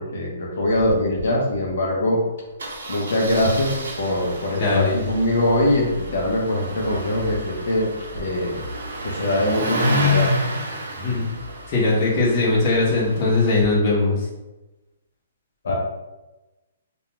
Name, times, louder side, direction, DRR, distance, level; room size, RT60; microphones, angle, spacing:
voice 1, 0.0-2.2 2.9-8.6 9.0-10.3 15.6-15.7, left 1 dB, 60° left, -2 dB, 0.6 m, -22 dB
Engine starting, 0.7-0.9 1.2-1.3 1.5-1.7 2.6-13.7, left 1 dB, 80° right, 0.6 m, -29 dB
voice 2, 4.6-5.0 11.0-11.2 11.7-14.3, left 3 dB, 30° left, -5 dB, 0.8 m, -20 dB
2.3 x 2.2 x 2.9 m, 1.1 s
hypercardioid pair, 170°, 0 cm